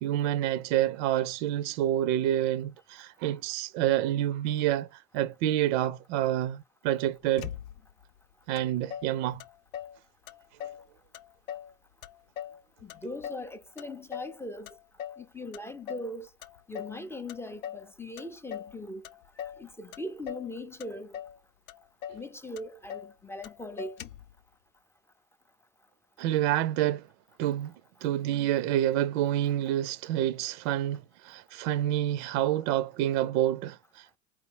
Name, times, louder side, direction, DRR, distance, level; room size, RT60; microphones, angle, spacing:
voice 1, 0.0-7.5 8.5-9.4 26.2-27.1 27.4-27.7 28.0-34.2, right 12 dB, 60° right, 0.5 m, -28 dB
Motor vehicle (road), 7.4-8.0 8.6-8.7 8.9-10.0 10.3-10.9 11.1-11.7 12.0-13.5 13.8-14.4 14.7-15.2 15.5-16.1 16.4-17.0 17.3-17.9 18.2-18.8 19.0-19.6 19.9-20.5 20.8-21.4 21.7-21.8 22.0-22.3 22.6-23.1 23.4-23.5 23.8-24.3, left 10 dB, 80° left, 0.6 m, -40 dB
voice 2, 12.8-14.8 15.2-16.3 16.7-19.1 19.4-21.2 22.1-24.0, left 1 dB, 5° left, 0.4 m, -40 dB
4.3 x 3.0 x 3.3 m
hypercardioid pair, 90°, 40 cm